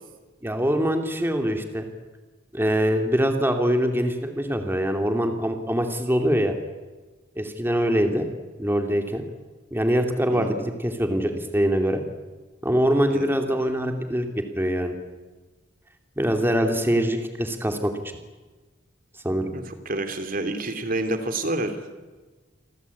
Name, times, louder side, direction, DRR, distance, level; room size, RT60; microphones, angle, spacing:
voice 1, 0.4-1.9 2.5-6.5 7.4-8.3 8.6-9.2 9.7-12.0 12.6-14.3 14.6-14.9 16.2-17.9 19.2-19.5, equal, 10° right, 5 dB, 2.7 m, -23 dB
voice 2, 19.4-21.8, right 2 dB, 50° right, 8 dB, 2.9 m, -28 dB
28.5 x 23.5 x 8.5 m, 1.3 s
head